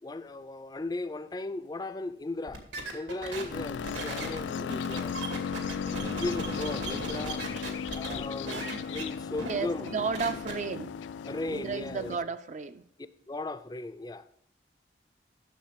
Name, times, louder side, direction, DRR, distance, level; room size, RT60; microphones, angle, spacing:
voice 1, 0.0-2.6 2.9-5.2 6.2-7.5 7.9-10.1 11.2-12.1 13.3-14.3, left 2 dB, 20° left, 0.4 m, -37 dB
sound 1, 2.5-8.2 8.5-9.0 9.4-9.5 9.8-10.5, right 2 dB, 85° right, 2.2 m, -38 dB
sound 2, 3.5-12.2, left 7 dB, 85° left, 0.3 m, -36 dB
voice 2, 9.5-10.9 11.5-12.8, right 5 dB, 40° right, 0.4 m, -33 dB
11.5 x 6.6 x 4.7 m
head